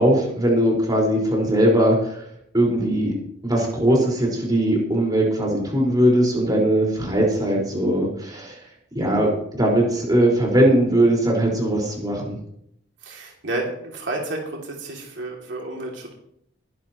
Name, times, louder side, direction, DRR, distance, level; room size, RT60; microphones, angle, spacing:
voice 1, 0.0-2.2 2.5-3.1 3.4-8.6 8.9-12.4, right 1 dB, 20° right, -2 dB, 4.9 m, -20 dB
voice 2, 13.0-16.1, right 2 dB, 75° right, -1 dB, 2.8 m, -31 dB
22.0 x 11.0 x 3.1 m, 0.71 s
head